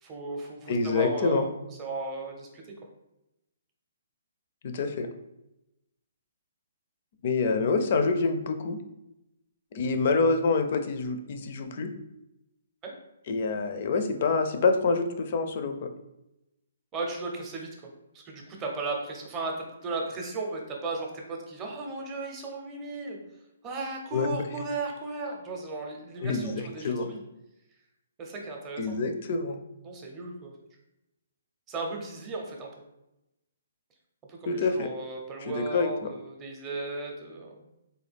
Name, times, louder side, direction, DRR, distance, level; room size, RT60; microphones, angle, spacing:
voice 1, 0.0-2.6 12.8-12.9 16.9-17.9 18.1-23.2 23.6-27.2 28.2-29.0 29.8-30.5 31.7-32.7 34.3-37.6, right 3 dB, 20° right, 0 dB, 0.6 m, -36 dB
voice 2, 0.7-1.4 4.6-5.1 7.2-8.8 9.7-11.9 13.3-15.9 24.1-24.4 26.2-26.5 26.8-27.1 28.8-29.6 34.5-34.9 35.4-36.1, left 4 dB, 45° left, 7 dB, 0.4 m, -26 dB
3.8 x 2.3 x 3.4 m, 0.90 s
hypercardioid pair, 160°, 0 cm